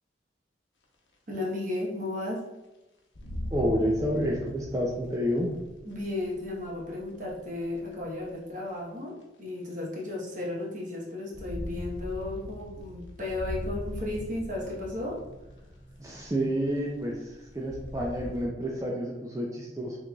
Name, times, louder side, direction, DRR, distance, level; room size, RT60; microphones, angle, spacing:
sound 1, 0.8-0.9 1.6-1.7 2.4-2.5 3.1-8.3 9.2-9.3 11.1-18.5, left 1 dB, 80° left, 0.9 m, -41 dB
voice 1, 1.3-2.4 5.8-15.2, left 2 dB, 45° right, -4 dB, 1.1 m, -34 dB
voice 2, 3.5-5.5 16.0-20.0, equal, 15° right, -3 dB, 0.4 m, -29 dB
6.0 x 3.1 x 2.3 m, 1.0 s
head